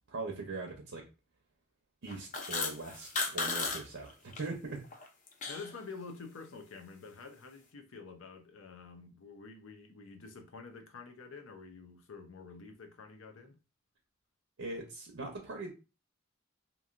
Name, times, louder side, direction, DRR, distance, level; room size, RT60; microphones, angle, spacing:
voice 1, 0.1-1.0 2.0-4.8 14.6-15.7, right 3 dB, 75° right, 0.6 m, -41 dB
sound 1, 2.1-3.8 4.1-4.4 4.8-5.7, left 4 dB, 40° left, 0.5 m, -35 dB
voice 2, 5.5-13.6, left 4 dB, 85° left, 0.6 m, -48 dB
2.9 x 2.6 x 2.4 m
head